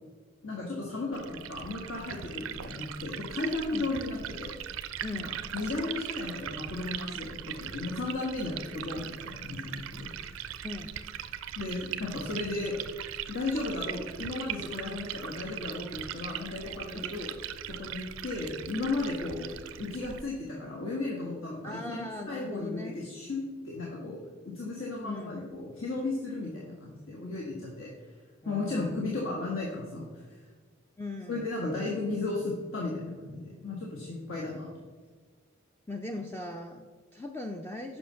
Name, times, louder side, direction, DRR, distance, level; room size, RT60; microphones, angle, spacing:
voice 1, 0.4-4.5 5.1-5.2 5.5-10.3 11.6-12.8 13.3-17.3 17.7-24.2 24.4-28.1 28.4-30.4 31.3-34.7, left 2 dB, 70° left, -3 dB, 1.4 m, -35 dB
Liquid, 1.1-20.2, right 9 dB, 75° right, 0.5 m, -40 dB
voice 2, 5.0-5.4 10.6-10.9 16.9-17.1 21.6-23.0 25.0-25.4 28.4-29.0 31.0-31.5 35.9-38.0, left 2 dB, 10° left, 3 dB, 0.4 m, -39 dB
7.7 x 5.7 x 5.6 m, 1.5 s
head